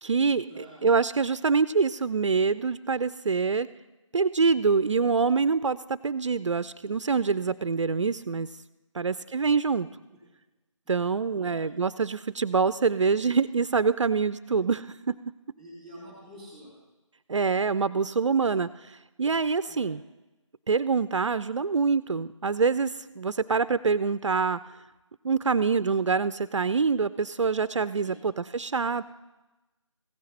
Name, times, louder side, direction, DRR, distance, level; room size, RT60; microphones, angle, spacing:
voice 1, 0.0-3.7 4.1-8.5 8.9-9.9 10.9-15.2 17.3-20.0 20.7-24.6 25.2-29.0, right 5 dB, 65° right, 16 dB, 0.4 m, -25 dB
voice 2, 11.3-11.7 14.4-14.5 15.6-16.7 19.7-19.9 28.0-28.2, equal, 5° left, -5 dB, 3.3 m, -47 dB
16.0 x 6.4 x 4.2 m, 1.1 s
figure-of-eight pair, 160°, 17 cm